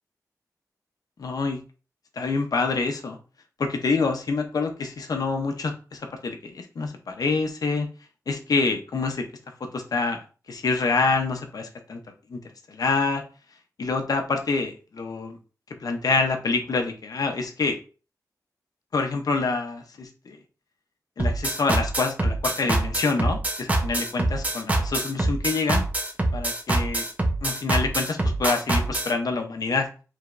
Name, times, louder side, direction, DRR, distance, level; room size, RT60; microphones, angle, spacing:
voice 1, 1.2-1.6 2.2-3.2 3.6-7.9 8.3-9.2 9.7-10.2 10.5-12.0 12.3-12.4 12.7-13.2 13.8-15.4 15.8-17.8 18.9-20.4 21.2-25.8 26.3-27.0 27.4-29.9, left 4 dB, 70° left, 5 dB, 0.6 m, -26 dB
sound 1, 21.2-29.1, right 2 dB, 25° right, 0.8 m, -24 dB
4.9 x 3.4 x 2.5 m, 0.36 s
wide cardioid pair, 130°, 7 cm